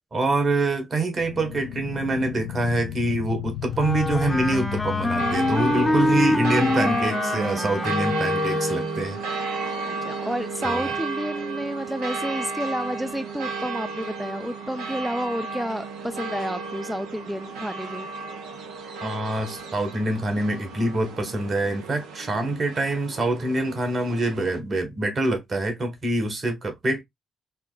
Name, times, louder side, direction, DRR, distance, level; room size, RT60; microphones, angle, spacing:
voice 1, 0.1-9.2 10.6-10.9 19.0-27.0, right 2 dB, 45° right, 1.6 m, -25 dB
sound 1, 1.2-7.1, left 12 dB, 75° left, 0.3 m, -34 dB
Wind instrument woodwind instrument, 3.7-9.1, left 1 dB, 20° left, 0.7 m, -25 dB
sound 2, 5.2-24.6, right 3 dB, 80° right, 0.8 m, -33 dB
voice 2, 9.9-18.1, equal, ahead, 0.4 m, -30 dB
5.5 x 2.2 x 2.4 m
hypercardioid pair, 50°, 0 cm